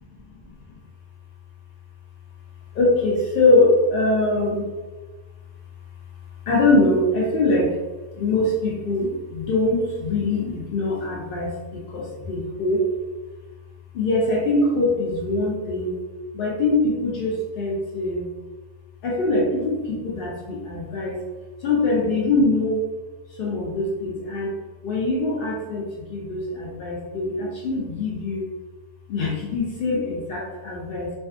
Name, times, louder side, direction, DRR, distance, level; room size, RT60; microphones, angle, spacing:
voice 1, 2.7-4.6 6.5-7.8 8.2-12.9 13.9-16.0 16.3-18.3 19.0-21.2 21.6-22.9 23.3-24.5 24.8-28.5 29.1-31.1, left 2 dB, 80° left, -3 dB, 0.5 m, -23 dB
2.5 x 2.3 x 2.4 m, 1.3 s
omnidirectional pair, 1.5 m